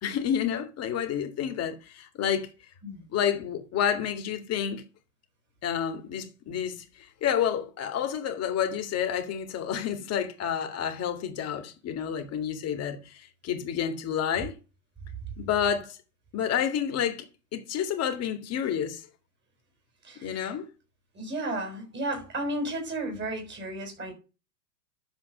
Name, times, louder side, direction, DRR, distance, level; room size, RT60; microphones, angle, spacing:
voice 1, 0.0-2.5 3.1-4.8 5.6-14.5 15.4-16.0 16.3-19.0 20.2-20.7, left 8 dB, 30° left, 2.2 m, -29 dB
voice 2, 20.0-20.5 21.1-24.1, right 1 dB, 20° right, 6.4 m, -33 dB
11.5 x 7.3 x 6.7 m
hypercardioid pair, 120°, 48 cm